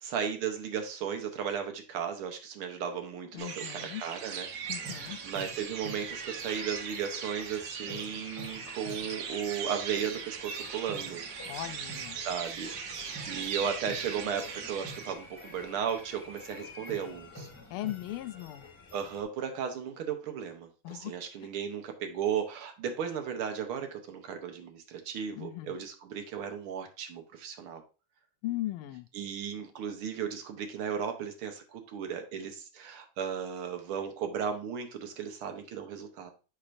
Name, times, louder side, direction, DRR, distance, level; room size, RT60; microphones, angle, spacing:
voice 1, 0.0-4.5 4.8-11.2 12.2-17.5 18.9-27.8 29.1-36.3, right 7 dB, 90° right, 1.9 m, -35 dB
voice 2, 3.3-4.0 4.7-5.2 11.4-12.2 17.7-18.7 20.8-21.1 25.3-25.7 28.4-29.1, left 15 dB, 85° left, 1.4 m, -38 dB
sound 1, 3.4-15.1, right 6 dB, 70° right, 1.4 m, -39 dB
sound 2, 4.7-19.2, left 1 dB, 15° left, 1.3 m, -48 dB
6.5 x 5.7 x 2.6 m
omnidirectional pair, 2.3 m